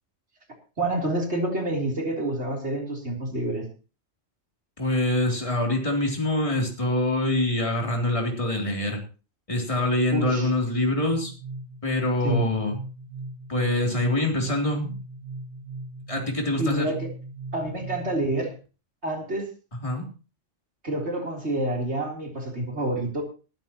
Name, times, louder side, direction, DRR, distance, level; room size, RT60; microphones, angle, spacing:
voice 1, 0.8-3.6 10.1-10.5 12.2-12.5 16.6-17.0 17.5-18.5 19.0-19.5 20.8-23.2, right 1 dB, 65° right, 0 dB, 3.9 m, -28 dB
voice 2, 4.8-9.0 9.5-11.3 11.8-12.8 13.5-15.0 16.1-16.9 19.8-20.1, left 1 dB, 25° left, 0 dB, 3.4 m, -25 dB
sound 1, 11.1-18.7, right 2 dB, 85° right, 2.1 m, -38 dB
20.0 x 13.0 x 3.0 m, 0.35 s
omnidirectional pair, 1.2 m